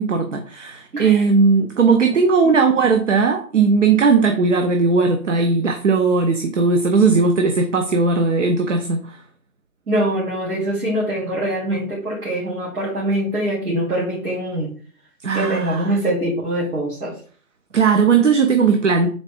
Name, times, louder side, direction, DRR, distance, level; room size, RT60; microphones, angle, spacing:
voice 1, 0.0-9.2 15.2-15.8 17.7-19.1, right 4 dB, 55° right, 0.5 m, -17 dB
voice 2, 0.9-1.2 9.9-14.7 15.3-17.2, right 1 dB, 90° right, 2.1 m, -23 dB
3.9 x 3.4 x 3.4 m
hypercardioid pair, 170°, 44 cm